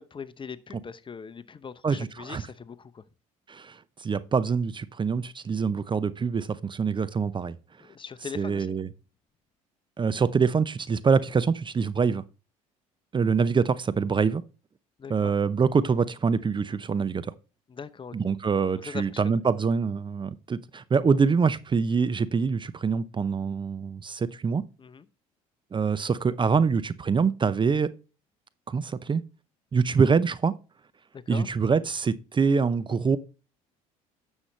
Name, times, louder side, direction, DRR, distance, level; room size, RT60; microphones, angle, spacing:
voice 1, 0.0-3.0 7.8-8.8 15.0-15.3 17.7-18.2 18.8-19.2 24.8-25.0 31.1-31.5, left 6 dB, 30° left, 0.8 m, -41 dB
voice 2, 1.8-2.4 3.5-7.6 8.4-8.9 10.0-12.2 13.1-14.4 15.1-17.3 18.1-24.6 25.7-27.9 28.7-29.2 29.7-30.5 31.3-33.2, right 5 dB, 25° right, 0.6 m, -25 dB
9.8 x 7.2 x 3.2 m
hypercardioid pair, 60°, 18 cm